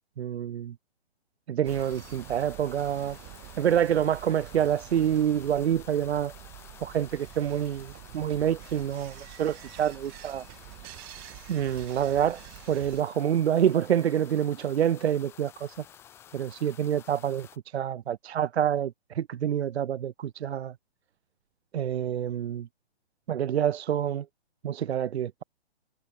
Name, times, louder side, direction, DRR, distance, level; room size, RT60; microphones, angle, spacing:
voice 1, 0.2-0.7 1.5-3.2 3.6-6.3 6.8-10.4 11.5-12.4 12.7-15.8 16.3-20.7 21.7-22.7 23.3-24.3 24.6-25.4, right 10 dB, 75° right, 0.7 m, -27 dB
sound 1, 1.6-17.6, left 10 dB, 5° left, 1.0 m, -51 dB
sound 2, 1.6-13.0, right 40 dB or more, 10° right, 0.6 m, -47 dB
hypercardioid pair, 165°, 32 cm